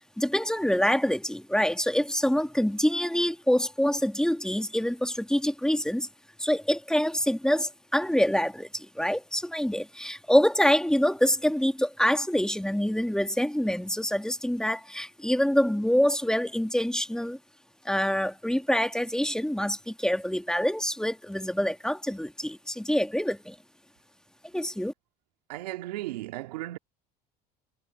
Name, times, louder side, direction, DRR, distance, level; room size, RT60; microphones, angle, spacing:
voice 1, 0.2-6.1 6.4-17.4 17.8-23.6 24.5-24.9, equal, 5° left, 2.3 m, -26 dB
voice 2, 25.5-26.8, right 17 dB, 85° right, 2.6 m, -35 dB
hypercardioid pair, 70°, 20 cm